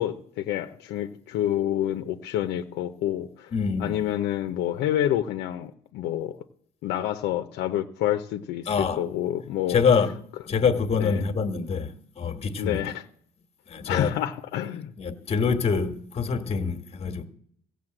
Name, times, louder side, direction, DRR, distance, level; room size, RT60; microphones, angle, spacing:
voice 1, 0.0-3.5 3.8-6.4 6.8-8.7 9.0-9.8 11.0-11.2 12.6-13.0 13.9-14.9, left 12 dB, 90° left, 0.8 m, -28 dB
voice 2, 3.5-4.1 8.7-9.1 9.7-12.9 13.7-14.1 15.0-17.2, left 5 dB, 35° left, 1.4 m, -26 dB
15.5 x 6.7 x 7.8 m
cardioid pair, 110°, 17 cm